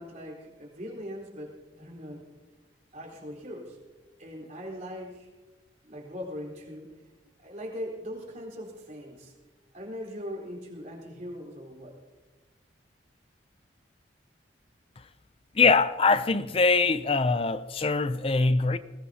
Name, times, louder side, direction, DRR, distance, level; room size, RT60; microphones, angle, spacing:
voice 1, 0.0-2.3 2.9-3.8 4.2-5.3 5.8-6.9 7.4-9.3 9.7-12.0, equal, 40° right, 4.1 m, -40 dB
voice 2, 15.5-18.8, left 4 dB, 30° left, 0.5 m, -23 dB
21.0 x 19.0 x 2.9 m
head